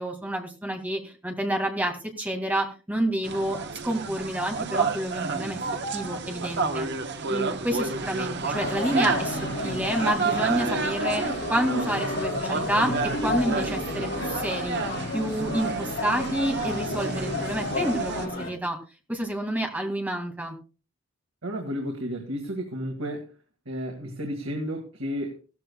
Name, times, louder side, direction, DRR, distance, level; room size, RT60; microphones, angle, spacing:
voice 1, 0.0-3.6 3.8-5.6 5.9-6.9 7.3-14.8 15.1-18.8 19.1-20.6, right 1 dB, 10° right, 3 dB, 2.2 m, -29 dB
sound 1, 3.2-18.3, right 4 dB, 55° right, 1.1 m, -31 dB
sound 2, 8.5-18.5, left 2 dB, 50° left, 6.1 m, -32 dB
voice 2, 21.4-23.3 23.7-25.4, equal, 85° right, 2 dB, 2.0 m, -32 dB
16.5 x 14.0 x 2.3 m, 0.33 s
head